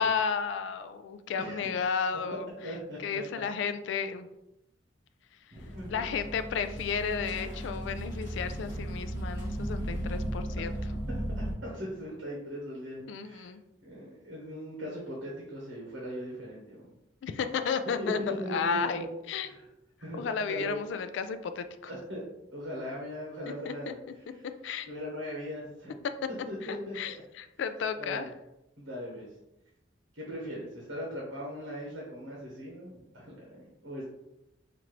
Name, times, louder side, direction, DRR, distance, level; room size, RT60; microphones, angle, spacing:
voice 1, 0.0-2.5 3.0-4.3 5.9-10.8 13.1-13.6 17.2-19.5 20.2-21.9 23.6-23.9 24.4-24.9 26.6-28.3, left 6 dB, 70° left, 10 dB, 0.3 m, -33 dB
voice 2, 1.3-1.7 2.3-3.2 5.5-6.2 11.1-13.5 13.8-16.9 18.0-18.1 18.4-19.1 19.4-19.7 20.0-20.8 21.9-22.2 22.5-24.0 24.3-24.5 24.9-26.0 26.5-27.0 28.0-28.3 28.8-29.3 30.1-34.1, equal, 75° right, -4 dB, 1.0 m, -39 dB
sound 1, 5.5-11.5, equal, 15° right, 1.5 m, -35 dB
4.3 x 2.5 x 3.0 m, 0.90 s
head